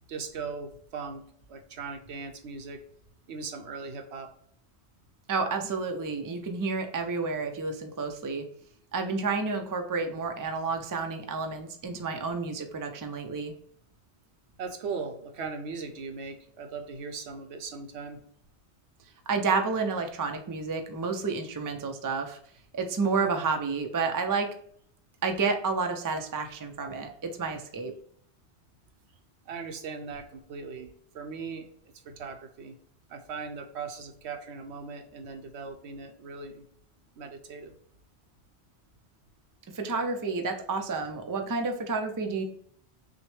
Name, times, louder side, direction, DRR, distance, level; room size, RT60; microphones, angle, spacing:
voice 1, 0.1-1.2 1.5-2.8 3.3-4.3 14.6-18.2 29.4-31.7 32.0-32.8 33.1-36.6 37.2-37.7, right 5 dB, 80° right, 5 dB, 1.0 m, -39 dB
voice 2, 5.3-8.5 8.9-13.5 19.3-22.4 22.7-24.5 25.2-27.9 39.7-42.4, right 4 dB, 30° right, 5 dB, 0.3 m, -30 dB
6.1 x 2.1 x 3.2 m, 0.64 s
omnidirectional pair, 1.1 m